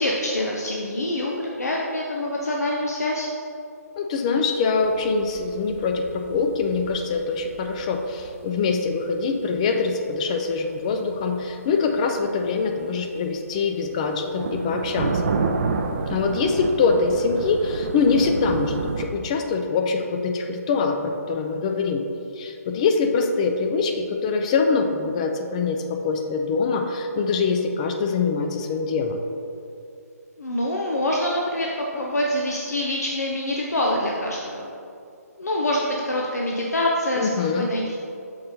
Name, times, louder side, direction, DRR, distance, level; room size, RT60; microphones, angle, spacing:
voice 1, 0.0-3.3 30.4-34.7 35.4-37.3 37.6-38.0, left 1 dB, 70° left, -2 dB, 0.7 m, -25 dB
voice 2, 4.0-15.3 16.1-22.1 22.4-29.2 37.2-37.7, left 4 dB, 25° left, 5 dB, 0.4 m, -24 dB
sound 1, 4.8-19.1, right 4 dB, 40° right, 0.4 m, -30 dB
6.5 x 4.2 x 4.2 m, 2.5 s
figure-of-eight pair, 140°, 9 cm